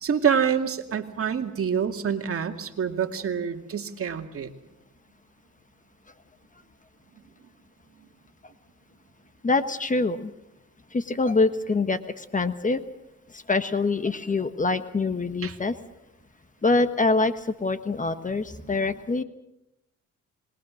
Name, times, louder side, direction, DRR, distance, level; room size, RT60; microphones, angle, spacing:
voice 1, 0.0-4.5 15.4-15.6, right 7 dB, 50° right, 5 dB, 2.3 m, -26 dB
voice 2, 9.4-10.3 10.9-12.8 13.3-15.8 16.6-19.2, left 3 dB, 25° left, 11 dB, 1.3 m, -25 dB
26.0 x 21.5 x 6.4 m, 0.89 s
cardioid pair, 90°, 30 cm